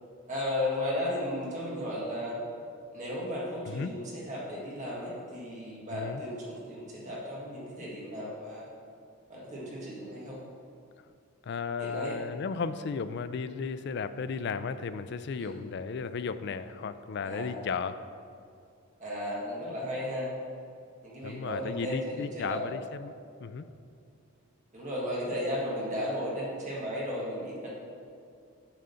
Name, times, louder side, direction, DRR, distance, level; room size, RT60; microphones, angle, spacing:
voice 1, 0.3-2.4 2.9-8.7 9.3-10.4 11.8-12.2 15.4-15.5 17.2-17.5 19.0-20.3 21.0-22.6 24.7-27.7, left 1 dB, 35° right, -5 dB, 1.5 m, -35 dB
voice 2, 5.9-6.2 11.4-18.0 21.2-23.1 23.4-23.6, left 5 dB, 50° left, 12 dB, 0.3 m, -34 dB
9.0 x 3.8 x 6.8 m, 2.4 s
head